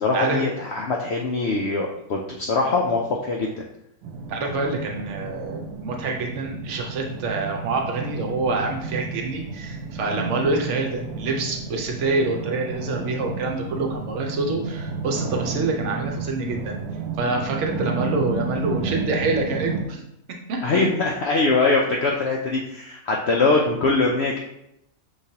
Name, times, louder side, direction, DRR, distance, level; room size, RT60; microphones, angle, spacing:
voice 1, 0.0-3.6 20.6-24.4, left 3 dB, 70° left, -1 dB, 0.6 m, -22 dB
sound 1, 4.0-19.8, right 4 dB, 85° right, 1.1 m, -31 dB
voice 2, 4.3-16.8 17.2-20.0 20.5-20.6, right 3 dB, 60° right, 1 dB, 1.0 m, -26 dB
5.8 x 3.1 x 2.8 m, 0.82 s
omnidirectional pair, 1.6 m